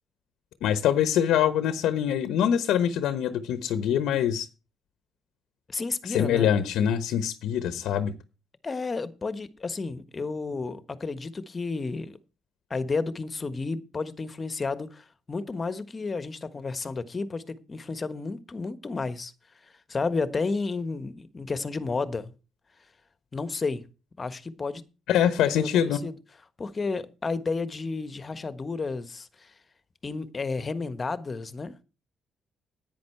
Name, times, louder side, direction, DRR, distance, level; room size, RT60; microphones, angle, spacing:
voice 1, 0.6-4.5 6.0-8.1 25.1-26.0, left 9 dB, 85° left, 1.0 m, -24 dB
voice 2, 5.7-6.5 8.6-12.1 12.7-19.3 19.9-22.3 23.3-23.8 24.2-24.8 25.6-26.1 26.6-29.5 30.0-31.7, left 4 dB, 30° left, 1.3 m, -32 dB
10.5 x 9.3 x 4.5 m
cardioid pair, 90°, 0 cm